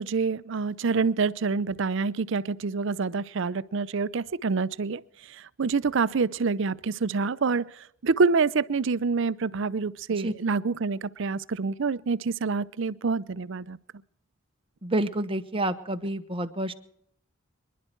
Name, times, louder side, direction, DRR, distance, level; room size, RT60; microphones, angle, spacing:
voice 1, 0.0-5.0 5.3-13.8, right 4 dB, 65° right, 0.5 m, -27 dB
voice 2, 14.8-16.7, right 1 dB, 25° right, 1.0 m, -29 dB
25.0 x 11.0 x 4.5 m
head